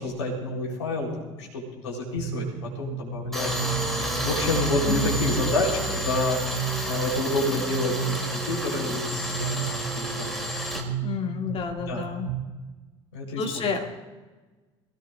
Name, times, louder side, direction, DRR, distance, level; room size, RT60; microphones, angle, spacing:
voice 1, 0.0-2.5 2.8-3.6 4.2-10.5 11.3-11.5 11.9-12.0 13.1-13.6, left 2 dB, 70° left, -2 dB, 3.9 m, -29 dB
sound 1, 2.2-12.3, right 7 dB, 50° right, 6.0 m, -33 dB
Tools, 3.3-10.8, equal, ahead, 3.1 m, -31 dB
voice 2, 4.8-5.2 11.0-12.3 13.4-13.8, left 5 dB, 35° left, 2 dB, 2.4 m, -30 dB
24.0 x 16.5 x 2.5 m, 1.3 s
figure-of-eight pair, 65°, 16 cm